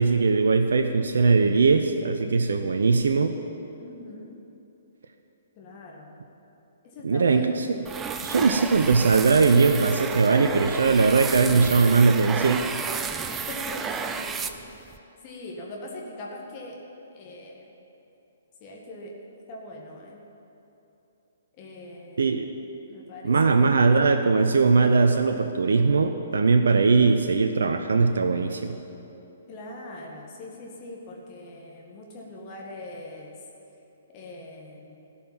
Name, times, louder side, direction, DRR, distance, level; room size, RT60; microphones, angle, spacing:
voice 1, 0.0-3.3 7.0-7.9 8.2-12.7 22.2-22.4 23.2-28.8, right 4 dB, 65° right, 6 dB, 0.6 m, -20 dB
voice 2, 3.8-4.3 5.6-6.2 6.8-7.4 13.1-13.2 13.5-13.8 14.0-15.0 15.2-16.8 17.1-17.7 18.6-19.1 19.5-20.2 21.6-22.4 22.9-23.8 29.5-33.4 34.1-35.0, left 2 dB, 35° left, -2 dB, 1.9 m, -42 dB
sound 1, 7.8-15.0, right 5 dB, 15° right, 0.5 m, -32 dB
16.0 x 5.7 x 8.8 m, 3.0 s
figure-of-eight pair, 125°, 0 cm